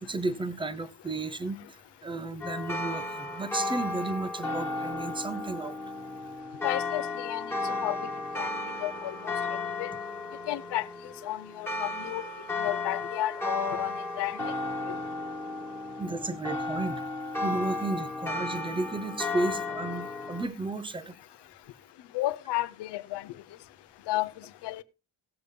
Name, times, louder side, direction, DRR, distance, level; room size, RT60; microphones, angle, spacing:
voice 1, 0.0-5.8 16.0-17.0 17.4-21.1, right 2 dB, 10° right, 0.6 m, -33 dB
sound 1, 2.4-20.5, left 3 dB, 5° left, 1.3 m, -34 dB
voice 2, 6.6-8.0 8.4-8.5 8.8-9.3 9.8-9.9 10.5-10.9 11.2-12.2 12.6-14.5 14.9-15.0 22.1-23.3 24.1-24.3 24.6-24.8, left 16 dB, 60° left, 0.7 m, -32 dB
17.5 x 6.9 x 3.3 m
cardioid pair, 170°, 46 cm